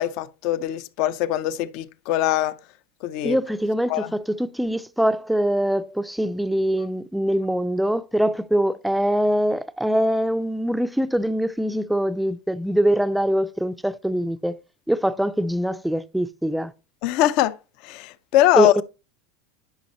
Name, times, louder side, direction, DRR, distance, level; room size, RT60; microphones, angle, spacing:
voice 1, 0.0-2.5 3.0-3.4 3.9-4.1 17.0-17.6 17.8-18.7, left 14 dB, 55° left, 0.6 m, -22 dB
voice 2, 3.2-14.6 14.9-16.7 18.6-18.8, equal, ahead, 0.4 m, -23 dB
10.5 x 5.3 x 3.0 m
supercardioid pair, 125°, 0 cm